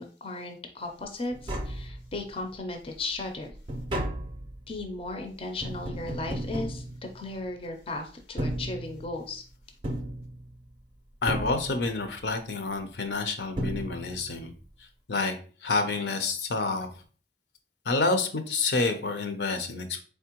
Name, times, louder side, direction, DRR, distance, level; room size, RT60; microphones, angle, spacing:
voice 1, 0.0-3.5 4.7-6.8 7.1-9.4, left 2 dB, 35° left, 4 dB, 0.5 m, -36 dB
Tap, 1.0-1.1 1.3-2.4 2.9-7.6 8.2-9.3 9.8-10.8 11.3-12.1 13.1-13.2 13.6-14.4 14.7-14.8, right 1 dB, 30° right, 0.5 m, -35 dB
voice 2, 11.2-14.5 15.1-15.4 15.6-16.9 17.9-20.0, left 3 dB, 75° left, 7 dB, 0.7 m, -28 dB
4.3 x 3.4 x 2.9 m, 0.40 s
head